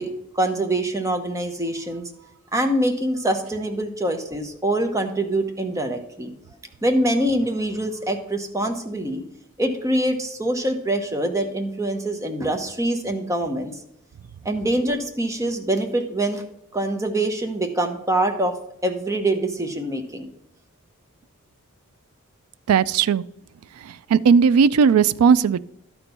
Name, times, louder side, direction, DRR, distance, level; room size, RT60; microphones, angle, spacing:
voice 1, 0.0-2.1 2.5-6.3 6.8-9.2 9.6-13.7 14.4-16.4 16.7-18.6 18.8-20.3, right 1 dB, 15° right, 5 dB, 0.8 m, -24 dB
voice 2, 22.7-23.2 23.7-25.6, right 6 dB, 85° right, 19 dB, 0.3 m, -17 dB
12.0 x 4.5 x 5.3 m, 0.80 s
head